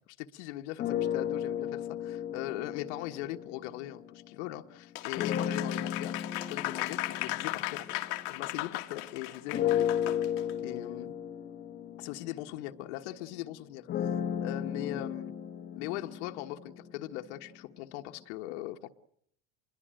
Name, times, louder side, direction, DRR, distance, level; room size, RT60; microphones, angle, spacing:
voice 1, 0.1-6.1 6.5-8.0 8.3-9.9 10.6-11.1 12.0-15.3 15.7-18.9, left 15 dB, 80° left, 1.4 m, -40 dB
sound 1, 0.8-4.3 5.1-8.9 9.5-17.5, left 9 dB, 30° left, 1.9 m, -35 dB
Applause, 5.0-10.5, left 19 dB, 60° left, 1.9 m, -36 dB
26.0 x 22.0 x 7.7 m
cardioid pair, 170°, 34 cm